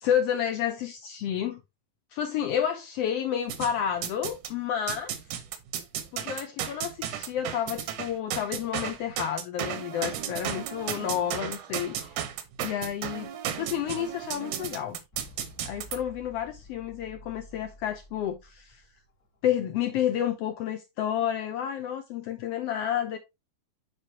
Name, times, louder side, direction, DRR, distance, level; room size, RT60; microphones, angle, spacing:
voice 1, 0.0-1.6 2.1-5.1 6.1-12.1 12.6-15.0 15.6-18.8 19.4-23.2, left 9 dB, 85° left, 1.4 m, -30 dB
sound 1, 3.5-4.5 4.9-16.0, right 10 dB, 85° right, 2.3 m, -34 dB
sound 2, 15.1-19.7, left 1 dB, 45° left, 1.2 m, -51 dB
8.1 x 4.9 x 2.8 m
omnidirectional pair, 3.4 m